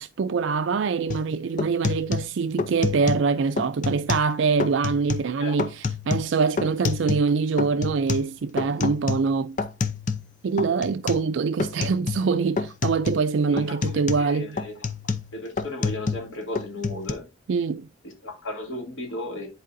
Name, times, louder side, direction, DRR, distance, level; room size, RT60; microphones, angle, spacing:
voice 1, 0.0-9.6 10.4-14.6 17.5-17.9, right 5 dB, 70° right, 0.4 m, -24 dB
sound 1, 1.1-1.3 1.6-3.3 3.6-4.3 4.6-5.3 5.6-7.3 7.6-10.3 10.6-11.3 11.6-12.3 12.6-13.3 13.6-16.3 16.6-17.1, left 4 dB, 40° left, 0.6 m, -28 dB
voice 2, 13.5-13.8 14.2-14.9 15.3-17.3 18.0-19.5, left 1 dB, 85° left, 2.5 m, -35 dB
10.0 x 4.7 x 2.6 m
head